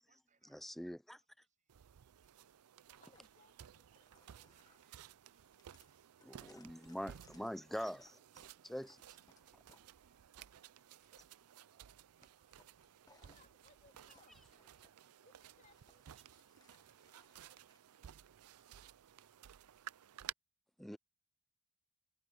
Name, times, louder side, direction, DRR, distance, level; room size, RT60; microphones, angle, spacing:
voice 1, 0.0-1.9 4.5-7.7 9.5-13.6 15.9-16.0, right 5 dB, 35° right, 7.3 m, -82 dB
voice 2, 0.6-1.2 6.2-8.2 8.6-9.0 20.8-21.0, equal, ahead, 0.3 m, -44 dB
sound 1, 1.7-20.3, right 10 dB, 80° right, 0.4 m, -56 dB
sound 2, 2.2-2.5 3.1-3.5 3.9-9.8 10.2-11.2 11.7-11.9 12.2-14.9 15.2-17.8, left 3 dB, 15° left, 1.3 m, -70 dB
voice 3, 3.0-3.9 13.2-14.5 15.2-16.0 20.8-21.0, left 3 dB, 35° left, 3.0 m, -69 dB
head